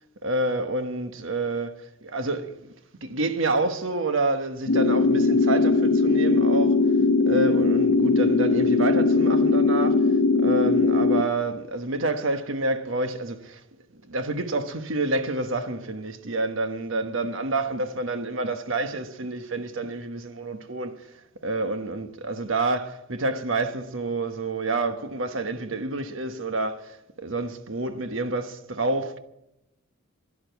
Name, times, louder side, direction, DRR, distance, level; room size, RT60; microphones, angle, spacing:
voice 1, 0.2-2.5 3.0-6.8 7.3-10.1 10.4-13.6 14.1-29.2, right 2 dB, 70° right, 1.2 m, -28 dB
sound 1, 4.7-11.2, left 3 dB, 75° left, 0.8 m, -20 dB
11.5 x 11.5 x 8.0 m
head